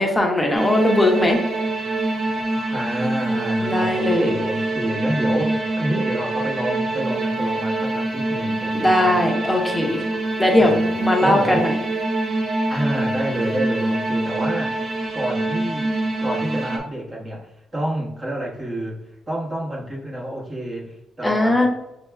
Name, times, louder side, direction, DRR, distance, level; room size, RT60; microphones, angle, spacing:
voice 1, 0.0-1.4 3.6-4.3 8.7-10.0 10.4-11.7 21.2-21.7, left 1 dB, 10° left, 0 dB, 1.0 m, -19 dB
sound 1, 0.5-16.8, right 2 dB, 45° right, 0.8 m, -25 dB
voice 2, 2.7-9.2 10.5-10.9 11.2-11.7 12.7-14.8 15.1-15.9 16.2-19.0 19.3-21.7, right 1 dB, 25° right, -4 dB, 1.4 m, -28 dB
5.7 x 2.8 x 2.3 m, 0.92 s
cardioid pair, 90°, 0 cm